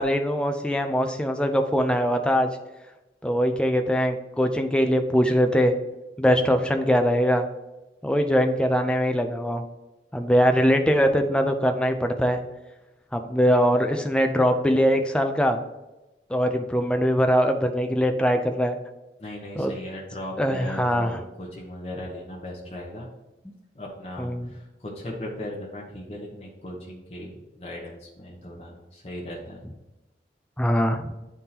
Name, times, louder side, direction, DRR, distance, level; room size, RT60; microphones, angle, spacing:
voice 1, 0.0-2.5 3.2-5.7 6.2-7.5 8.0-9.6 10.1-12.4 13.1-15.6 16.3-18.8 19.6-19.7 20.4-21.2 24.2-24.5 30.6-31.1, equal, 5° left, 5 dB, 0.4 m, -22 dB
voice 2, 19.2-23.1 23.7-29.6, left 1 dB, 35° left, -4 dB, 0.9 m, -37 dB
9.4 x 3.6 x 2.8 m, 1.0 s
head